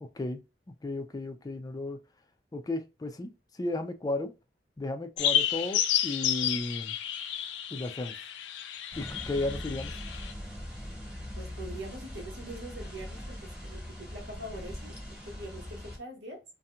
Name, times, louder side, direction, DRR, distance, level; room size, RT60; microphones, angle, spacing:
voice 1, 0.0-2.0 2.5-4.3 4.8-7.0 7.7-8.2 9.0-9.9, left 2 dB, 20° left, 0.3 m, -34 dB
sound 1, 5.2-10.3, left 10 dB, 90° left, 0.4 m, -31 dB
sound 2, 8.9-16.0, left 1 dB, 5° right, 1.1 m, -41 dB
voice 2, 11.3-16.4, right 1 dB, 80° right, 1.1 m, -43 dB
2.8 x 2.5 x 2.2 m
head